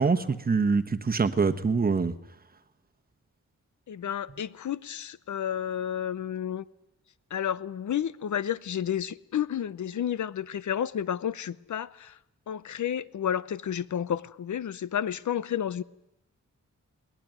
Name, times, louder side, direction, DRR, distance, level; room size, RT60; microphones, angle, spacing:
voice 1, 0.0-2.1, right 4 dB, 30° right, 1.1 m, -24 dB
voice 2, 3.9-6.6 7.3-12.2 12.5-15.8, left 9 dB, 70° left, 0.8 m, -31 dB
21.5 x 20.0 x 9.4 m
wide cardioid pair, 175°, 31 cm